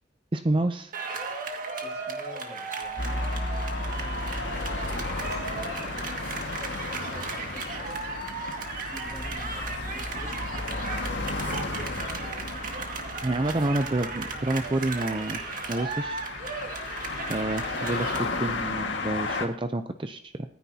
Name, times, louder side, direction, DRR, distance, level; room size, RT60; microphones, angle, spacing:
voice 1, 0.3-0.9 13.2-15.4 15.7-16.2 17.3-20.3, right 2 dB, 30° right, 8 dB, 0.5 m, -28 dB
sound 1, 0.9-18.2, right 4 dB, 50° right, 2.0 m, -36 dB
voice 2, 1.8-4.5 5.0-12.0, left 1 dB, 15° left, 0 dB, 2.5 m, -49 dB
sound 2, 3.0-19.5, left 3 dB, 85° left, 1.8 m, -34 dB
Bass guitar, 9.0-18.9, equal, 60° left, 3.4 m, -44 dB
25.5 x 9.9 x 2.8 m, 0.69 s
head